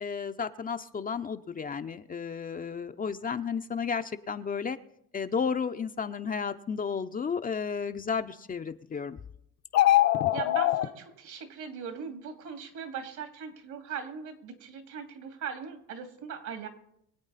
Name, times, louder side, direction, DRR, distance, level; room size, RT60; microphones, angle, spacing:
voice 1, 0.0-4.8 5.1-9.2, left 6 dB, 25° left, 8 dB, 0.6 m, -33 dB
sound 1, 9.7-10.9, left 14 dB, 55° left, 0.9 m, -22 dB
voice 2, 10.3-16.7, right 6 dB, 65° right, 6 dB, 2.7 m, -39 dB
23.5 x 8.4 x 4.1 m, 0.75 s
supercardioid pair, 90°, 31 cm